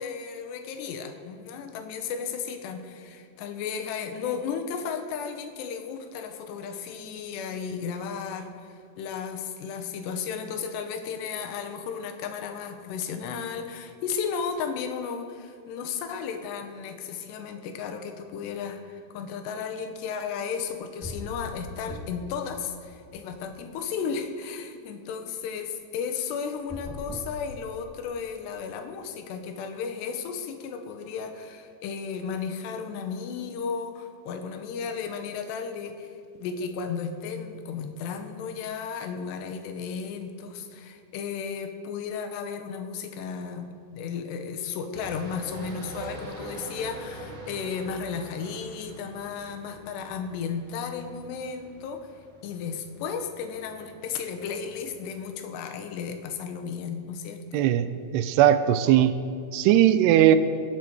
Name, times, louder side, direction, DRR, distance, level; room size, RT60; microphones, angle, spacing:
voice 1, 0.0-36.1 36.4-52.1 52.4-57.7, left 6 dB, 80° left, 6 dB, 3.0 m, -34 dB
sound 1, 20.6-20.7 21.0-22.3 22.7-23.8 26.5-28.1, left 2 dB, 20° left, 0.5 m, -40 dB
sound 2, 44.9-55.3, right 1 dB, 35° right, 2.3 m, -44 dB
voice 2, 57.5-57.9 58.1-59.1 59.5-60.4, right 11 dB, 85° right, 12 dB, 2.6 m, -19 dB
23.0 x 8.0 x 4.6 m, 2.3 s
omnidirectional pair, 4.8 m